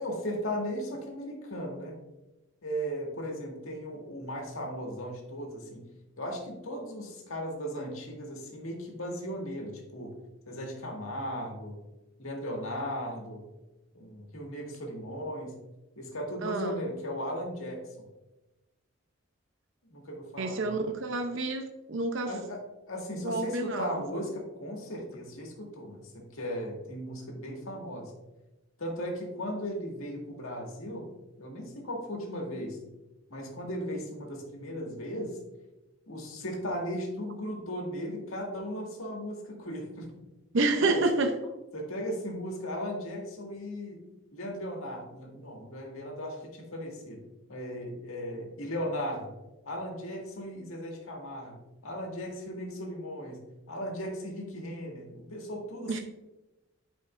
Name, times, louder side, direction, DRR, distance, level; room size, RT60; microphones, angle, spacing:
voice 1, 0.0-2.0 2.6-5.9 6.2-10.1 10.4-11.8 12.2-13.4 13.9-15.6 15.9-18.1 19.9-20.9 22.2-28.1 28.8-31.1 31.4-32.8 33.3-35.4 36.1-40.1 40.8-41.0 41.7-44.0 44.3-47.2 47.5-49.3 49.6-56.0, equal, 85° left, 0 dB, 1.8 m, -37 dB
voice 2, 16.4-16.8 20.4-22.3 23.2-24.0 40.5-41.3 55.9-56.0, right 3 dB, 65° right, 6 dB, 0.6 m, -29 dB
11.0 x 5.2 x 2.5 m, 1.0 s
head